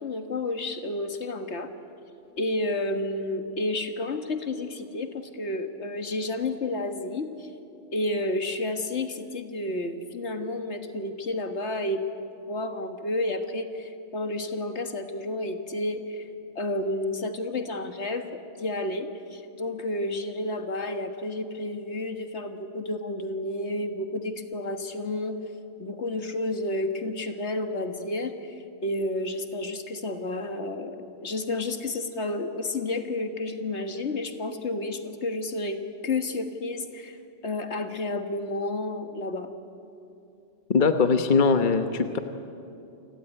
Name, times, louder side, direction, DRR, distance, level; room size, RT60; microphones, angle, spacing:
voice 1, 0.0-1.7 2.4-7.5 7.9-12.0 12.5-16.3 16.5-25.4 25.8-37.2 37.4-39.5, left 2 dB, 70° left, 6 dB, 1.8 m, -31 dB
voice 2, 40.7-42.2, left 4 dB, 45° left, 7 dB, 1.2 m, -21 dB
28.5 x 17.5 x 10.0 m, 2.7 s
omnidirectional pair, 1.2 m